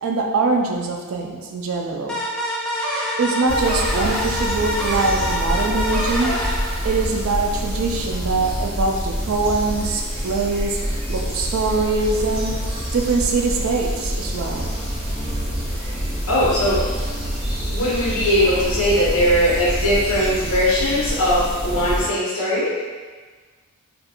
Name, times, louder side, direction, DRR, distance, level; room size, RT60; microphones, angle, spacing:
voice 1, 0.0-2.2 3.2-6.4 6.8-10.8 11.1-12.6 12.9-14.7, right 3 dB, 65° right, 2 dB, 0.3 m, -23 dB
sound 1, 2.1-7.5, equal, 5° left, 0.5 m, -26 dB
sound 2, 3.5-22.1, equal, 25° right, 0.8 m, -26 dB
voice 2, 16.3-16.8 17.7-22.7, equal, 75° left, -8 dB, 1.0 m, -20 dB
2.4 x 2.3 x 2.8 m, 1.4 s
head